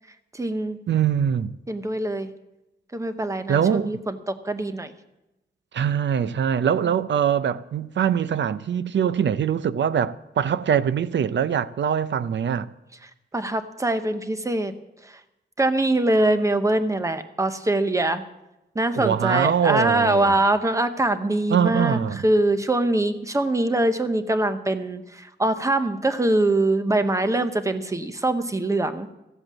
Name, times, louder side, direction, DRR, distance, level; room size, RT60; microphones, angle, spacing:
voice 1, 0.3-0.8 1.7-2.3 2.9-4.9 13.3-14.7 15.0-15.1 15.6-18.2 18.7-29.1, right 2 dB, 15° right, 0.8 m, -23 dB
voice 2, 0.9-1.5 3.5-3.9 5.7-12.7 19.0-20.4 21.5-22.2, right 8 dB, 85° right, 0.5 m, -23 dB
14.5 x 7.9 x 7.3 m
wide cardioid pair, 150°, 18 cm